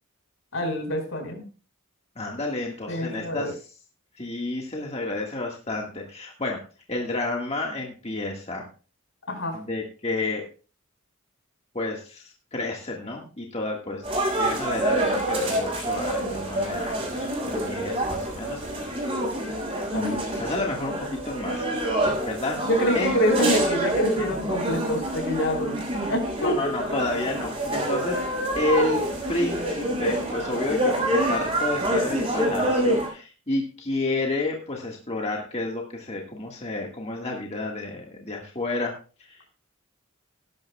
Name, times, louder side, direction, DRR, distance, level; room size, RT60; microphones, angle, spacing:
voice 1, 0.5-1.4 2.9-3.5 9.3-9.6 19.9-20.2 22.7-25.7 26.1-26.7, equal, 70° left, 3 dB, 5.0 m, -26 dB
voice 2, 2.1-3.7 4.2-6.6 6.9-8.7 9.5-10.4 11.7-12.2 12.5-14.0 14.4-19.2 19.9-21.6 22.2-22.6 22.9-23.1 26.4-28.2 28.5-29.0 29.3-38.9 39.2-39.4, left 2 dB, 30° left, 0 dB, 1.7 m, -30 dB
sound 1, 14.0-33.1, right 1 dB, 25° right, 5.6 m, -27 dB
18.5 x 11.0 x 2.3 m, 0.36 s
head